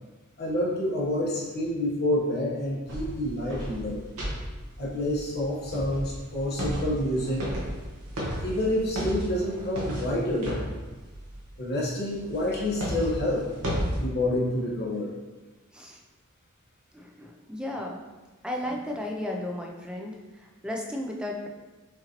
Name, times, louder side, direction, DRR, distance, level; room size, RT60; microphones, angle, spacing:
voice 1, 0.4-4.0 4.8-7.5 8.4-10.6 11.6-13.5 14.0-15.1, left 1 dB, 45° left, -5 dB, 1.1 m, -28 dB
sound 1, 2.9-11.5 12.1-14.0, equal, 65° right, 0.9 m, -34 dB
voice 2, 16.9-18.0 18.4-21.5, left 1 dB, 5° right, 0 dB, 0.4 m, -34 dB
5.8 x 2.6 x 2.9 m, 1.2 s
head